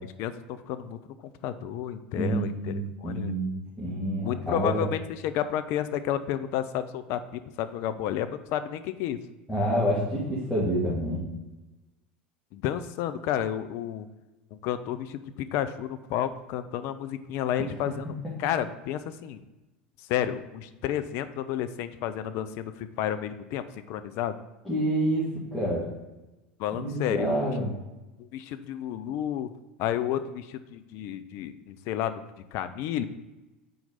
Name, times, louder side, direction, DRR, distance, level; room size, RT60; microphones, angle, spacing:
voice 1, 0.2-1.0 1.4-3.3 4.2-9.2 12.5-14.1 14.5-19.4 20.1-24.4 26.6-27.4 28.2-29.5 29.8-32.2 32.5-33.0, left 10 dB, 55° left, 11 dB, 0.4 m, -31 dB
voice 2, 2.2-4.8 9.5-11.2 17.6-17.9 24.6-25.3 25.5-25.9 26.7-27.7, equal, 5° left, -8 dB, 1.8 m, -28 dB
4.5 x 3.9 x 5.4 m, 1.1 s
figure-of-eight pair, 80°, 6 cm